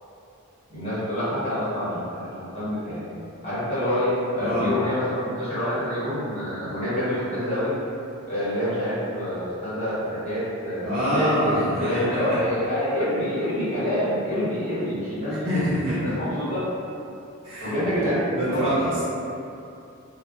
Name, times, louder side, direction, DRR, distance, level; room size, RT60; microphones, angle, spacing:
voice 1, 0.7-3.1 3.4-7.7 8.3-10.8 11.1-16.6 17.6-18.8, equal, 30° left, -13 dB, 1.1 m, -27 dB
voice 2, 4.4-4.7 10.8-12.4 15.4-16.0 17.4-18.0 18.3-19.0, equal, 30° right, -13 dB, 1.1 m, -25 dB
2.5 x 2.1 x 2.3 m, 2.7 s
head